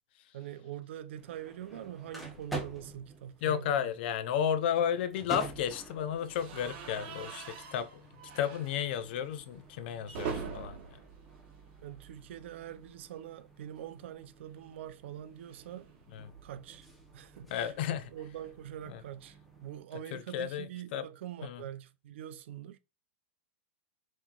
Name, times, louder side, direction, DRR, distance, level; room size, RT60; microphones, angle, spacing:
voice 1, 0.3-3.8 11.8-15.9 16.4-16.9 17.1-22.8, right 11 dB, 70° right, 0.6 m, -44 dB
sound 1, 1.2-19.8, right 2 dB, ahead, 0.9 m, -49 dB
voice 2, 3.4-8.0 8.3-10.8 16.1-16.3 17.5-18.1 18.9-19.0 20.1-21.0 21.4-21.6, left 9 dB, 55° left, 0.6 m, -33 dB
sound 2, 6.3-12.3 12.6-12.8 13.1-13.2 14.4-16.8, right 6 dB, 45° right, 1.3 m, -44 dB
5.5 x 3.1 x 2.4 m
supercardioid pair, 160°, 7 cm